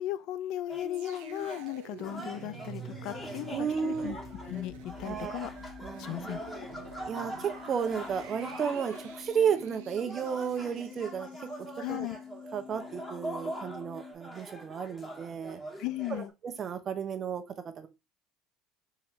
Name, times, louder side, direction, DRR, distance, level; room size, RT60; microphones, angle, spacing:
voice 1, 0.0-4.2 4.5-5.5 6.0-6.7 11.8-12.2 15.8-16.3, left 14 dB, 65° left, 0.4 m, -36 dB
sound 1, 0.7-1.7 2.0-16.3, right 1 dB, 10° left, 1.9 m, -43 dB
sound 2, 0.9-12.1 12.4-12.6, right 8 dB, 85° right, 0.8 m, -49 dB
sound 3, 2.9-14.1, left 8 dB, 10° right, 1.1 m, -48 dB
voice 2, 3.5-4.1 5.0-5.5 5.8-6.3 7.1-11.3 11.9-12.1 12.5-15.6 16.1-17.4 17.8-17.9, right 7 dB, 40° right, 0.9 m, -33 dB
3.8 x 2.9 x 4.4 m
hypercardioid pair, 80°, 0 cm